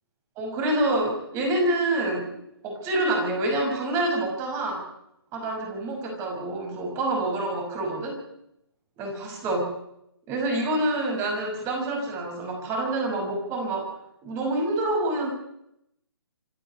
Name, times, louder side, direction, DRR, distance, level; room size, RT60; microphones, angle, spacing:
voice 1, 0.4-2.3 2.6-4.9 5.3-8.2 9.0-9.7 10.3-13.9 14.2-15.3, right 1 dB, 20° right, 2 dB, 6.0 m, -27 dB
26.5 x 11.0 x 9.8 m, 0.80 s
figure-of-eight pair, 140°, 13 cm